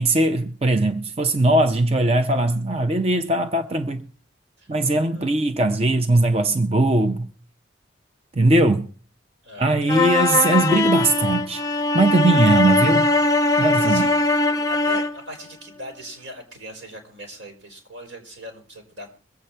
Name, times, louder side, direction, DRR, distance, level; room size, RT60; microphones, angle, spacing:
voice 1, 0.0-4.1 4.7-7.3 8.4-8.9 9.6-11.6 11.9-13.1 13.6-14.1, right 2 dB, 30° right, 0.5 m, -20 dB
voice 2, 9.4-10.1 12.3-12.4 12.8-13.1 13.7-14.4 14.7-19.1, equal, 85° right, 4.4 m, -39 dB
sound 1, 9.9-15.2, left 2 dB, 20° left, 0.6 m, -20 dB
22.5 x 8.1 x 4.4 m
head